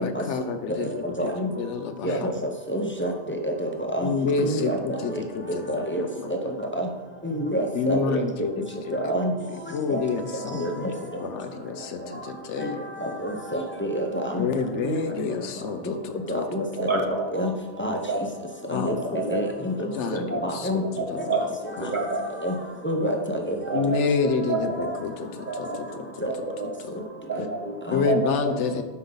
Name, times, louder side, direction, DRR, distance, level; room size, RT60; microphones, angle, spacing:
voice 1, 0.0-2.3 4.0-6.3 7.7-9.1 9.7-10.8 11.2-12.8 14.4-16.4 18.7-19.2 19.8-21.2 21.8-21.9 23.7-26.3 26.8-27.0 27.9-28.8, left 5 dB, 80° left, 8 dB, 1.1 m, -29 dB
voice 2, 2.7-3.1 3.6-4.1 4.4-4.8 5.7-6.0 6.8-6.9 7.2-8.0 9.1-9.3 9.9-10.0 10.6-10.7 13.2-14.1 16.3-16.6 17.3-17.5 17.8-18.0 18.7-18.9 19.3-19.5 20.4-20.8 22.4-22.5 22.8-23.6 26.2-26.3, equal, 10° left, 2 dB, 0.8 m, -27 dB
voice 3, 16.8-17.1 18.1-18.2 19.0-19.4 20.3-20.4 21.0-21.4 21.8-22.2 23.0-23.2 23.7-24.0 24.5-24.9 25.5-25.8 26.3-26.7 27.3-27.7 28.0-28.5, right 3 dB, 45° right, 0 dB, 1.5 m, -28 dB
12.0 x 5.5 x 4.0 m, 1.2 s
omnidirectional pair, 1.2 m